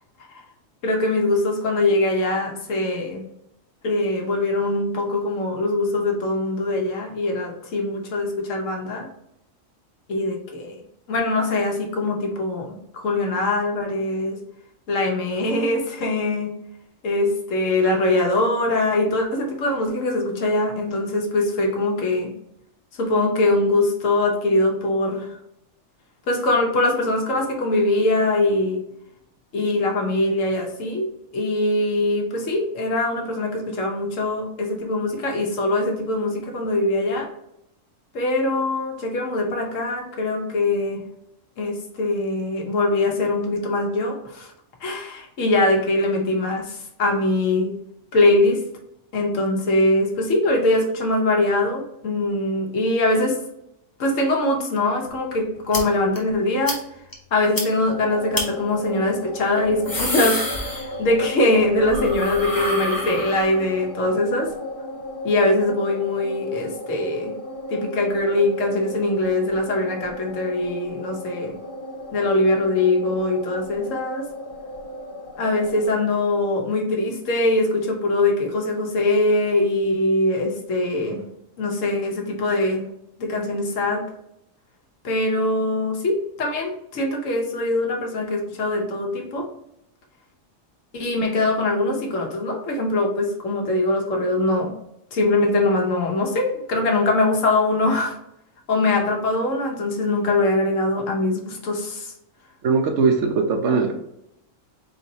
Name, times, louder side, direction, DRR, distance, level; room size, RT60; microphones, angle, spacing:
voice 1, 0.8-3.2 3.8-9.1 10.1-10.8 11.1-14.4 14.9-16.5 17.0-22.3 23.0-25.3 26.3-28.8 29.5-37.3 38.1-41.1 41.6-44.5 44.8-47.7 48.1-48.6 49.1-53.4 54.0-56.8 57.3-64.5 65.2-67.3 67.7-71.6 72.1-74.3 75.4-81.2 81.6-82.9 83.2-84.0 85.0-89.5 90.9-94.7 95.1-98.2 98.7-102.1, left 2 dB, 75° left, 1 dB, 1.3 m, -22 dB
sound 1, 55.7-55.8 56.2-56.3 56.7-56.8 57.1-57.2 57.6-57.7 58.3-58.5 59.6-61.2 61.5-63.7, left 1 dB, 20° left, 0.8 m, -28 dB
sound 2, 57.9-75.9, left 1 dB, 45° left, 0.9 m, -35 dB
voice 2, 102.6-103.9, right 4 dB, 65° right, 3 dB, 0.9 m, -20 dB
4.0 x 3.8 x 2.7 m, 0.79 s
omnidirectional pair, 1.3 m